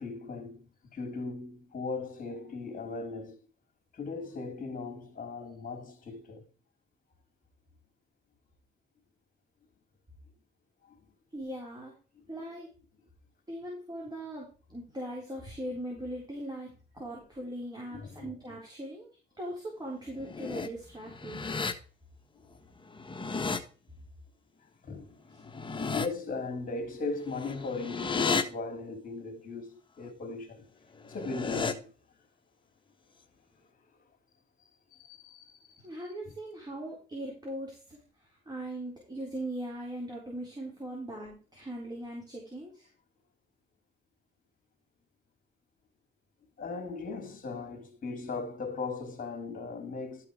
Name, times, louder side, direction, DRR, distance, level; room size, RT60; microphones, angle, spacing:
voice 1, 0.0-3.4 3.9-6.4 10.8-11.0 17.9-18.3 24.8-25.2 25.9-30.7 31.1-31.9 33.7-33.8 34.9-35.8 36.3-36.4 46.6-50.3, left 3 dB, 45° left, 3.2 m, -38 dB
voice 2, 11.3-11.9 12.3-12.7 13.5-19.1 19.4-21.4 25.3-25.4 35.8-42.9, right 1 dB, 20° right, 4.1 m, -40 dB
sound 1, 20.1-20.7 21.1-21.7 22.9-23.6 25.4-26.1 27.3-28.4 31.0-31.7, left 4 dB, 25° left, 1.2 m, -33 dB
12.5 x 5.9 x 4.9 m
cardioid pair, 90°, 20 cm